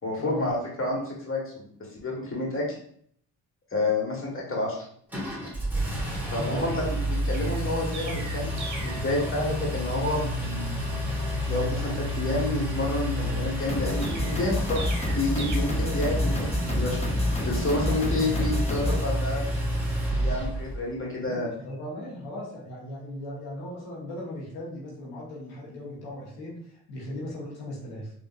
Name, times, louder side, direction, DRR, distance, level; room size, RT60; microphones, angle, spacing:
voice 1, 0.0-1.7 2.0-2.8 3.7-4.8 6.3-10.9 11.5-17.0 17.4-19.4 20.0-21.5, left 2 dB, 35° left, -3 dB, 1.3 m, -29 dB
Engine, 5.1-20.8, equal, 5° right, 1.3 m, -30 dB
Chirp tweet, 7.3-9.1 14.0-15.6, right 3 dB, 50° right, 0.7 m, -40 dB
sound 1, 8.4-20.4, left 1 dB, 15° left, 0.7 m, -32 dB
voice 2, 21.3-26.6 26.9-28.1, left 1 dB, 90° left, -5 dB, 1.0 m, -38 dB
3.8 x 2.4 x 2.3 m, 0.62 s
supercardioid pair, 55°, 37 cm